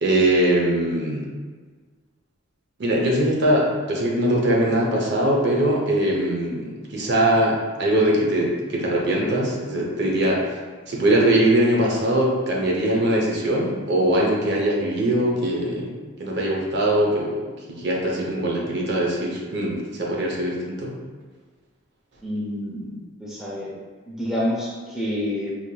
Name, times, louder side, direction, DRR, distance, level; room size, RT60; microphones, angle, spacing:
voice 1, 0.0-1.3 2.8-10.6 10.9-15.9 16.2-17.4 17.7-21.0, right 1 dB, 50° right, -2 dB, 0.7 m, -21 dB
voice 2, 22.2-23.7 24.1-25.5, left 1 dB, ahead, -7 dB, 0.5 m, -28 dB
4.5 x 2.8 x 2.2 m, 1.4 s
head